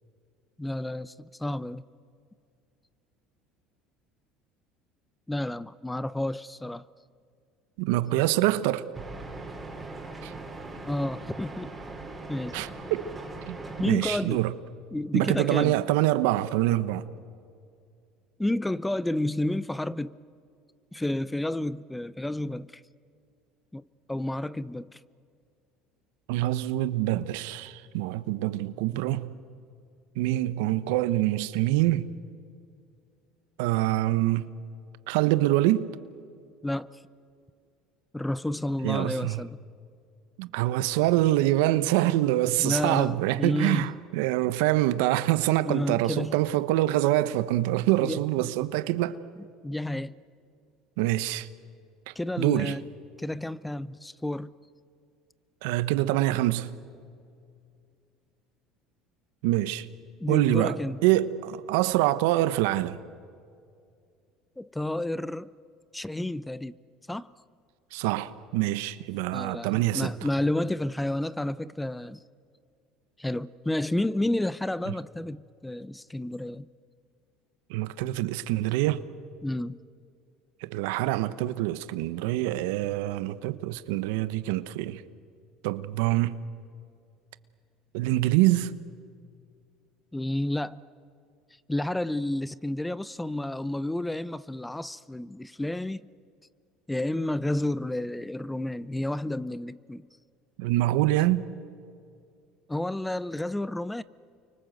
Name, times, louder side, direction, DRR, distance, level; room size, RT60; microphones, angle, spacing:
voice 1, 0.6-1.8 5.3-6.8 10.9-11.7 12.3-12.6 13.8-14.4 14.9-15.8 18.4-20.2 20.9-22.8 23.7-25.0 36.6-37.0 38.1-39.6 42.6-44.0 45.6-46.4 47.9-48.5 49.4-50.1 52.2-52.8 53.2-54.6 60.2-61.0 64.6-65.5 65.9-66.8 67.1-67.3 69.3-72.2 73.2-76.7 79.4-79.8 90.1-90.8 91.7-96.0 96.9-100.1 102.7-104.0, left 1 dB, 10° left, 0.7 m, -31 dB
voice 2, 7.8-8.8 10.2-10.3 12.5-13.1 13.5-13.6 13.9-14.5 15.1-17.0 26.3-29.3 30.2-32.1 33.6-34.5 35.1-35.9 38.8-39.4 40.4-49.2 51.0-51.5 52.1-52.8 55.6-56.8 59.4-59.8 60.3-63.0 67.9-70.1 77.7-79.0 80.6-85.0 85.6-86.4 87.9-88.7 100.6-101.4, right 16 dB, 80° right, 1.0 m, -25 dB
sound 1, 8.9-13.9, right 2 dB, 15° right, 5.3 m, -40 dB
29.5 x 24.5 x 7.9 m
supercardioid pair, 90°, 0 cm